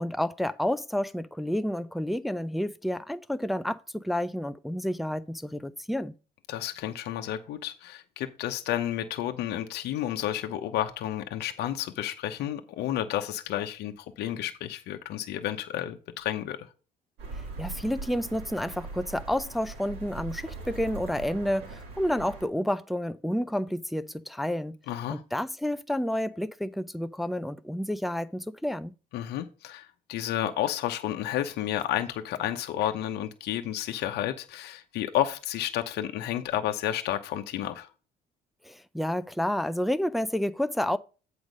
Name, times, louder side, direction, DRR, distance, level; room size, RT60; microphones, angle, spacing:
voice 1, 0.0-6.1 17.3-24.8 25.1-28.9 38.6-41.0, left 1 dB, ahead, 0.4 m, -30 dB
voice 2, 6.5-16.7 24.9-25.2 29.1-37.9, left 12 dB, 75° left, 0.9 m, -31 dB
sound 1, 17.2-22.5, right 3 dB, 90° right, 3.0 m, -41 dB
8.1 x 5.1 x 5.2 m
cardioid pair, 110°, 17 cm